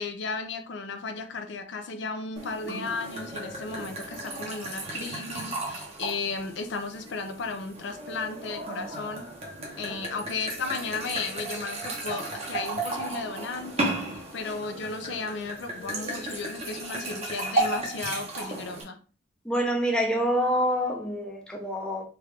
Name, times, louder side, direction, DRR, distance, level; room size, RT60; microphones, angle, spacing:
voice 1, 0.0-9.3 9.8-14.0 14.3-19.0, left 4 dB, 65° left, 0.4 m, -34 dB
sound 1, 2.4-18.8, right 2 dB, 35° right, 0.8 m, -34 dB
voice 2, 19.4-22.1, equal, 5° left, 0.5 m, -26 dB
3.4 x 2.4 x 3.2 m
head